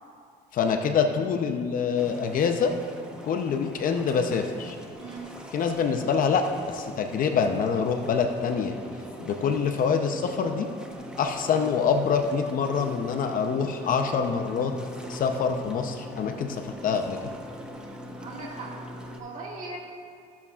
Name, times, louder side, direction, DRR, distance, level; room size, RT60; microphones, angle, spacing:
voice 1, 0.5-2.7 3.2-4.8 5.5-8.8 9.2-10.7 11.2-14.7 15.1-17.2, left 6 dB, 55° left, 5 dB, 0.7 m, -25 dB
sound 1, 2.0-19.2, equal, 5° right, 0.9 m, -42 dB
voice 2, 5.0-5.3 17.7-18.7 19.2-19.8, right 3 dB, 50° right, -5 dB, 2.0 m, -39 dB
14.5 x 7.1 x 2.4 m, 2.3 s
cardioid pair, 110°, 17 cm